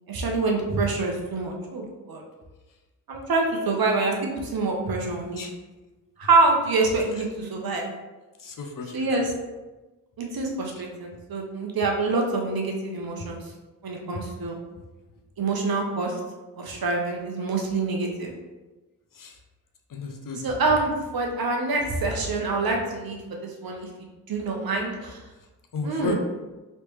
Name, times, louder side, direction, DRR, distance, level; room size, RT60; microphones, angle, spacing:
voice 1, 0.1-2.2 3.1-5.5 6.2-7.9 8.9-9.3 10.2-13.4 13.8-14.6 15.4-16.2 16.6-18.3 20.4-23.9 24.3-25.2 25.8-26.2, right 3 dB, 55° right, 1 dB, 0.9 m, -26 dB
voice 2, 8.4-9.3 19.1-19.4 19.9-20.4 25.7-26.1, left 4 dB, 50° left, 3 dB, 0.7 m, -33 dB
3.2 x 3.1 x 3.2 m, 1.1 s
supercardioid pair, 45°, 43 cm